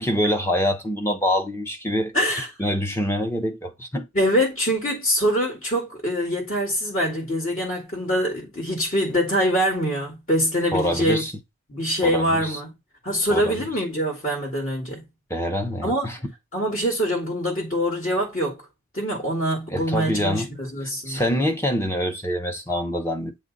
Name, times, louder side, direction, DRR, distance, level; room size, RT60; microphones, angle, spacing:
voice 1, 0.0-2.1 2.6-4.1 10.7-11.3 12.0-12.6 13.3-13.6 15.3-16.2 19.7-20.5 20.8-23.4, equal, 10° left, 1.0 m, -25 dB
voice 2, 2.1-2.5 4.1-11.2 11.7-12.7 13.0-15.0 15.8-16.1 16.5-18.6 18.9-21.2, equal, 40° left, 2.1 m, -24 dB
8.4 x 3.4 x 4.1 m
head